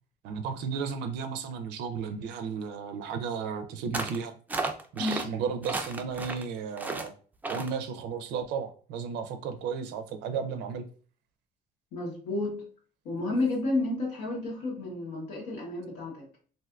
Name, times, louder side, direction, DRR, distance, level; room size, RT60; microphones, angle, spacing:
voice 1, 0.2-4.3 4.9-7.1 7.4-10.9, right 6 dB, 90° right, 0.4 m, -34 dB
sound 1, 3.9-4.2 4.5-5.3 5.6-6.4 6.8-7.1 7.4-7.7, right 3 dB, 10° right, 0.3 m, -33 dB
voice 2, 11.9-12.6 13.0-16.3, left 2 dB, 85° left, 1.1 m, -31 dB
3.3 x 2.5 x 2.4 m
cardioid pair, 110°, 17 cm